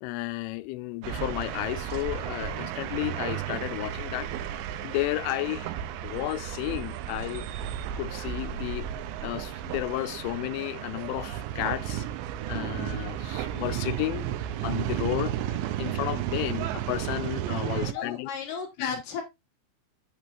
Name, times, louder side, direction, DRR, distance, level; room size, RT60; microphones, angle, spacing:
voice 1, 0.0-4.3 4.8-5.7 6.0-7.5 8.0-8.9 9.2-12.1 12.5-18.3 18.8-19.0, left 18 dB, 85° left, 3.1 m, -32 dB
sound 1, 1.0-17.9, right 11 dB, 80° right, 2.6 m, -33 dB
voice 2, 17.7-19.2, left 6 dB, 70° left, 2.2 m, -35 dB
9.5 x 7.3 x 2.6 m
omnidirectional pair, 5.6 m